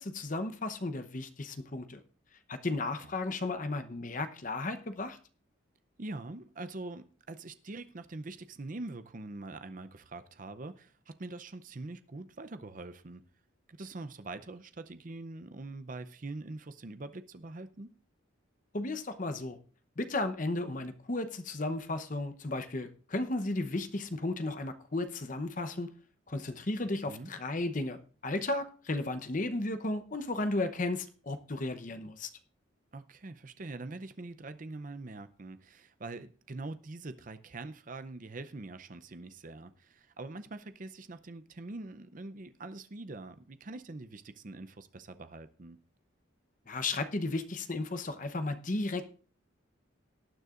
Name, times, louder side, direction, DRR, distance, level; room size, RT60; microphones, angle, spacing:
voice 1, 0.0-2.0 2.5-5.2 18.7-19.6 20.0-25.9 26.3-32.3 46.7-49.1, left 2 dB, 40° left, 0.9 m, -34 dB
voice 2, 6.0-13.2 13.7-17.9 27.1-27.3 32.9-45.8, right 2 dB, 40° right, 0.6 m, -44 dB
18.5 x 9.4 x 2.5 m
head